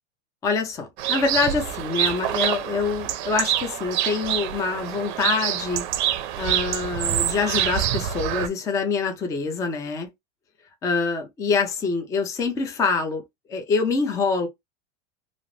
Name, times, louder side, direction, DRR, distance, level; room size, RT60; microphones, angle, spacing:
voice 1, 0.4-5.9 6.4-10.1 10.8-13.2 13.5-14.5, left 4 dB, 10° left, 0.3 m, -25 dB
sound 1, 1.0-8.5, right 11 dB, 50° right, 0.5 m, -26 dB
2.5 x 2.4 x 3.1 m
supercardioid pair, 155°, 33 cm